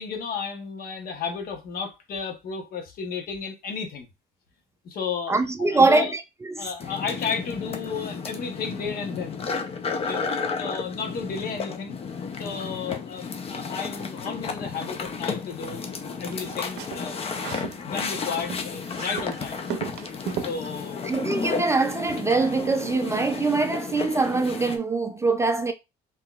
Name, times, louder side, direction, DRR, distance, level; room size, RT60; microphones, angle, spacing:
voice 1, 0.0-4.1 4.8-6.1 6.6-9.4 9.9-12.0 12.4-15.8 16.2-17.2 17.8-19.7 20.4-21.0, left 5 dB, 60° left, 1.0 m, -33 dB
voice 2, 5.3-6.7 21.0-25.7, right 3 dB, 15° right, 0.3 m, -23 dB
sound 1, 6.8-24.8, left 5 dB, 35° left, 0.5 m, -33 dB
sound 2, 16.3-17.8 18.1-20.6, right 9 dB, 85° right, 0.5 m, -35 dB
3.7 x 2.8 x 2.3 m
cardioid pair, 110°, 17 cm